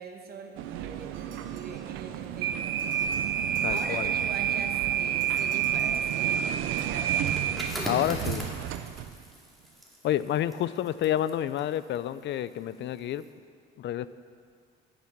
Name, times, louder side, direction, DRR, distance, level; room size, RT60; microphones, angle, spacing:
voice 1, 0.0-2.8 3.7-7.1, right 5 dB, 50° right, 1.1 m, -43 dB
sound 1, 0.6-9.2, right 9 dB, 90° right, 0.5 m, -29 dB
sound 2, 1.1-2.3 2.8-4.5 5.2-6.9, right 5 dB, 75° right, 1.4 m, -52 dB
voice 2, 3.6-4.1 7.8-8.5 10.0-13.2 13.8-14.1, left 11 dB, 65° left, 0.4 m, -29 dB
sound 3, 7.1-12.6 13.0-13.3, equal, ahead, 2.3 m, -40 dB
10.5 x 7.3 x 5.9 m
cardioid pair, 90°, 20 cm